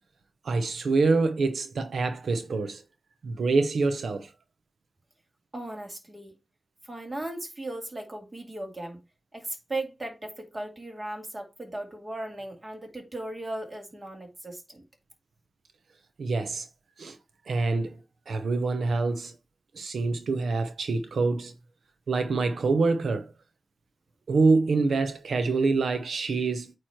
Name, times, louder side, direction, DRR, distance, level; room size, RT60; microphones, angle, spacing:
voice 1, 0.4-2.8 3.2-4.3 16.2-16.7 17.0-17.2 17.5-18.0 18.3-19.3 19.7-21.5 22.1-23.3 24.3-26.7, right 3 dB, 90° right, 0.7 m, -26 dB
voice 2, 5.5-6.4 6.8-9.0 9.3-14.8, right 1 dB, 30° right, 2.2 m, -37 dB
8.7 x 3.1 x 4.5 m
wide cardioid pair, 100°, 0 cm